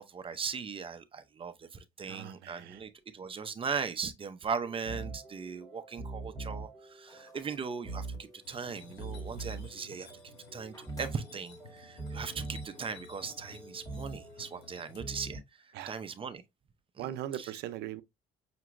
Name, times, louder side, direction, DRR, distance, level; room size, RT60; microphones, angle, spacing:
voice 1, 0.0-10.1 10.5-16.4 17.0-17.5, right 6 dB, 30° right, 0.6 m, -39 dB
voice 2, 2.1-2.8 15.7-15.9 17.0-18.0, right 12 dB, 80° right, 0.6 m, -39 dB
sound 1, 4.6-15.4, right 3 dB, ahead, 1.8 m, -44 dB
sound 2, 7.0-10.4 10.6-11.8, left 2 dB, 20° left, 1.0 m, -61 dB
sound 3, 8.4-15.2, left 4 dB, 80° left, 1.5 m, -54 dB
5.9 x 2.8 x 2.5 m
cardioid pair, 110°, 17 cm